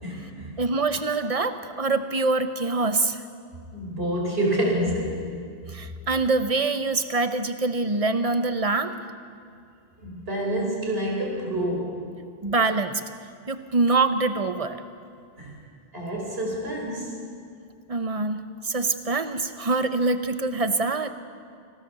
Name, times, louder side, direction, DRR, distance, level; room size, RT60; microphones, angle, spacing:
voice 1, 0.0-0.5 3.7-5.3 10.0-12.0 15.4-15.5 15.9-17.2, right 1 dB, 70° right, -1 dB, 4.7 m, -28 dB
voice 2, 0.6-3.2 5.7-9.0 12.4-13.0 13.5-14.8 17.9-21.1, right 3 dB, 35° right, 9 dB, 1.1 m, -24 dB
25.5 x 16.5 x 6.9 m, 2.3 s
omnidirectional pair, 1.0 m